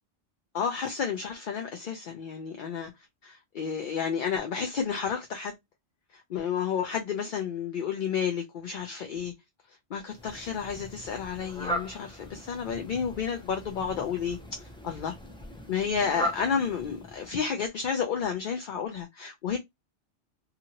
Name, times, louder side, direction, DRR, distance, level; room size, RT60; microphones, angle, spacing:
voice 1, 0.5-2.9 3.2-5.5 6.1-9.3 9.9-15.1 15.7-19.6, left 7 dB, 60° left, 0.6 m, -31 dB
Fowl, 10.1-17.5, equal, 10° left, 0.3 m, -39 dB
2.7 x 2.5 x 2.8 m
omnidirectional pair, 1.2 m